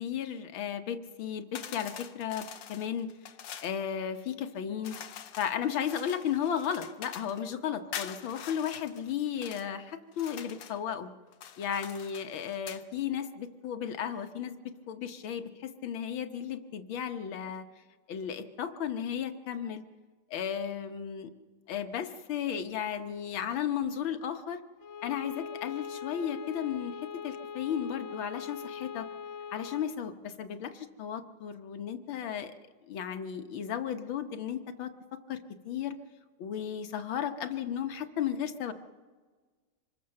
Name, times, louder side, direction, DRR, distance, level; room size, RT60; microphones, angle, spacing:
voice 1, 0.0-3.1 3.6-5.0 5.4-11.1 11.6-17.6 18.1-19.8 20.3-21.3 21.7-24.6 25.0-27.0 27.2-29.1 29.5-32.5 32.9-34.9 35.3-36.0 36.4-38.7, left 8 dB, 65° left, 8 dB, 1.8 m, -34 dB
sound 1, 1.5-3.8 4.8-7.4 7.9-9.7 10.1-10.8 11.3-12.8, left 9 dB, 90° left, 1.9 m, -44 dB
Bowed string instrument, 24.8-30.0, left 7 dB, 45° left, 0.9 m, -42 dB
25.5 x 21.0 x 6.6 m, 1.4 s
omnidirectional pair, 2.4 m